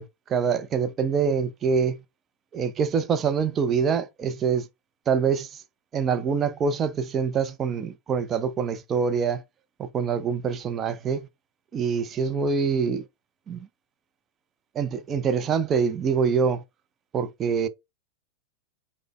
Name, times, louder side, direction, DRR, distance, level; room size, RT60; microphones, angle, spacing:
voice 1, 0.0-2.0 2.5-4.7 5.1-5.6 5.9-9.4 9.8-11.3 11.7-13.0 13.5-13.7 14.7-16.6 17.1-17.7, right 6 dB, 25° right, 0.4 m, -25 dB
4.8 x 2.1 x 2.4 m
figure-of-eight pair, 90°, 0 cm